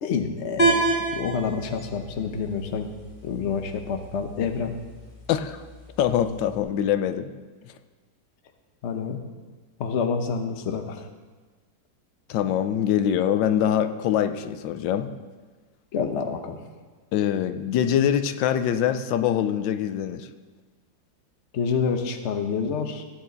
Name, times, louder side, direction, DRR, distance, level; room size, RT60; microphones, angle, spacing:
voice 1, 0.0-0.8 1.1-2.9 3.2-4.7 8.8-9.2 9.8-11.1 15.9-16.6 21.5-23.0, left 6 dB, 50° left, 6 dB, 1.0 m, -28 dB
sound 1, 0.6-6.6, right 3 dB, 30° left, 1.6 m, -30 dB
voice 2, 5.3-5.6 6.0-7.3 12.3-15.1 17.1-20.3, left 10 dB, 90° left, 10 dB, 1.4 m, -24 dB
15.5 x 9.0 x 4.0 m, 1.4 s
omnidirectional pair, 2.0 m